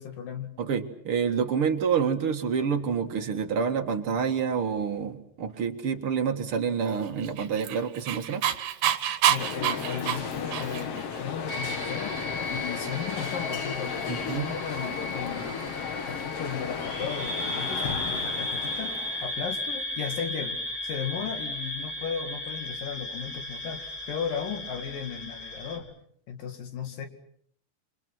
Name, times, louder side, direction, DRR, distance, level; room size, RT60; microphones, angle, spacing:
voice 1, 0.0-0.5 9.3-12.1 12.5-15.6 16.1-26.0 26.3-27.1, left 7 dB, 70° left, 6 dB, 3.8 m, -36 dB
voice 2, 0.6-8.4 14.1-14.5, right 6 dB, 45° right, 5 dB, 2.1 m, -28 dB
Dog, 7.2-11.0, right 11 dB, 70° right, 2.8 m, -27 dB
sound 1, 9.4-19.4, left 6 dB, 50° left, 2.2 m, -35 dB
sound 2, 11.5-25.8, left 1 dB, 30° left, 4.8 m, -35 dB
28.0 x 26.0 x 6.2 m, 0.65 s
omnidirectional pair, 4.1 m